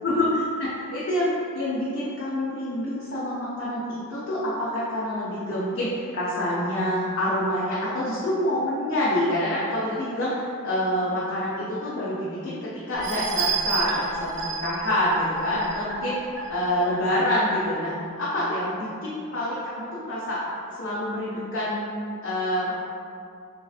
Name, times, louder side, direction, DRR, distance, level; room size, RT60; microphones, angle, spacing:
voice 1, 0.0-16.1 16.5-20.4 20.7-22.7, left 1 dB, 55° left, -8 dB, 0.5 m, -27 dB
sound 1, 12.9-17.4 17.9-18.0 18.4-18.5, right 4 dB, 55° right, 0.5 m, -31 dB
3.1 x 2.7 x 2.3 m, 2.4 s
head